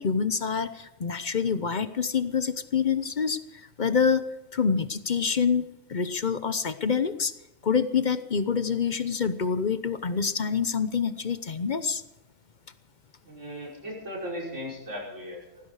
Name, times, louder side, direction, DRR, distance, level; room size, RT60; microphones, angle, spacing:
voice 1, 0.0-3.4 3.8-4.2 4.5-5.6 5.9-7.3 7.6-12.0, left 6 dB, 45° left, 12 dB, 0.8 m, -26 dB
voice 2, 13.2-15.7, equal, 60° right, -2 dB, 5.8 m, -37 dB
18.5 x 15.0 x 4.8 m, 0.94 s
omnidirectional pair, 1.4 m